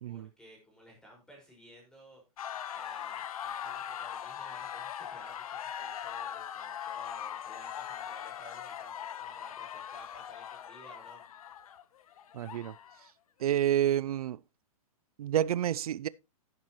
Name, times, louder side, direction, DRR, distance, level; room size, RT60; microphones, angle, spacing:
voice 1, 0.1-2.2 2.7-11.2, right 1 dB, 5° left, 5.2 m, -55 dB
sound 1, 2.4-13.1, left 9 dB, 75° left, 1.1 m, -40 dB
voice 2, 12.3-12.7 13.4-14.4 15.2-16.1, right 11 dB, 85° right, 0.5 m, -29 dB
12.0 x 10.5 x 3.1 m
hypercardioid pair, 160°, 18 cm